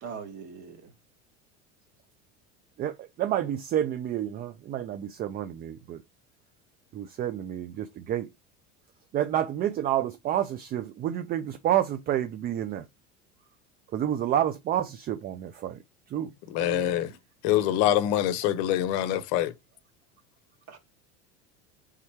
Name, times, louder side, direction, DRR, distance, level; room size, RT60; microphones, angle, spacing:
voice 1, 0.0-0.9 16.6-17.2 17.5-17.9 20.7-20.8, right 6 dB, 45° right, 1.4 m, -42 dB
voice 2, 2.8-6.0 6.9-8.3 9.1-12.8 13.9-15.8 16.1-16.3, right 11 dB, 30° right, 0.3 m, -29 dB
voice 3, 16.5-17.1 17.4-19.5, left 12 dB, 60° left, 0.7 m, -25 dB
3.6 x 3.1 x 4.3 m
hypercardioid pair, 90°, 35 cm